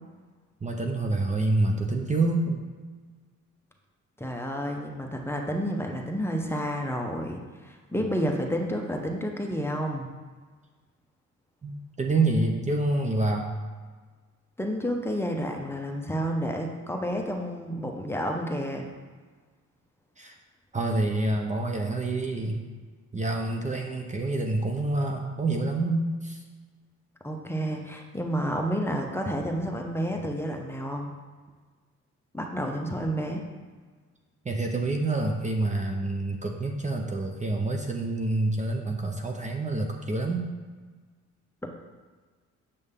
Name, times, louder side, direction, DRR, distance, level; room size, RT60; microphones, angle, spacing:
voice 1, 0.6-2.6 11.6-13.5 20.2-20.4 20.7-22.6 23.1-26.4 34.4-40.5, right 2 dB, 25° right, 2 dB, 0.8 m, -27 dB
voice 2, 4.2-10.1 14.6-18.9 27.2-31.1 32.3-33.4, equal, 10° left, 1 dB, 0.9 m, -30 dB
6.8 x 6.3 x 3.7 m, 1.4 s
cardioid pair, 90°, 30 cm